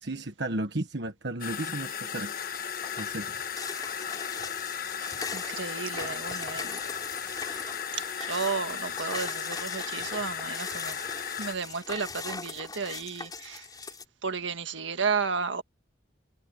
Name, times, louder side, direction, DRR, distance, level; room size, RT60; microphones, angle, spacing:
voice 1, 0.0-2.3 2.9-3.3, right 2 dB, 65° right, 1.4 m, -34 dB
sound 1, 1.4-11.5, left 7 dB, 50° left, 1.3 m, -35 dB
sound 2, 1.6-2.0 2.4-14.0, left 4 dB, 20° left, 5.5 m, -40 dB
voice 2, 5.3-6.8 7.3-7.5 8.2-11.0 11.4-13.7 14.2-15.6, right 5 dB, 80° right, 1.6 m, -33 dB
head